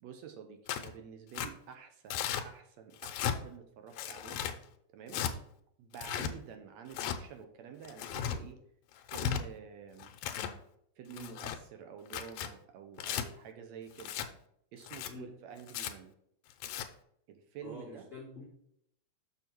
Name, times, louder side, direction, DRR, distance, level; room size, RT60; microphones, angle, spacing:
voice 1, 0.0-4.4 4.9-5.2 5.8-8.6 9.1-10.1 11.0-14.1 14.7-16.1 17.3-18.1, right 7 dB, 70° right, 6 dB, 2.0 m, -49 dB
Tearing, 0.7-0.9 1.3-1.5 2.1-2.4 3.0-3.4 4.0-4.5 5.1-5.3 5.9-6.3 6.9-7.2 7.8-8.4 9.0-9.4 10.0-10.5 11.1-11.6 12.1-12.5 13.0-13.2 14.0-14.3 14.8-15.1 15.7-15.9 16.5-16.9, left 9 dB, 80° left, 2.0 m, -35 dB
voice 2, 17.6-18.5, left 2 dB, 30° left, -3 dB, 1.1 m, -47 dB
6.9 x 6.2 x 4.5 m, 0.72 s
omnidirectional pair, 3.4 m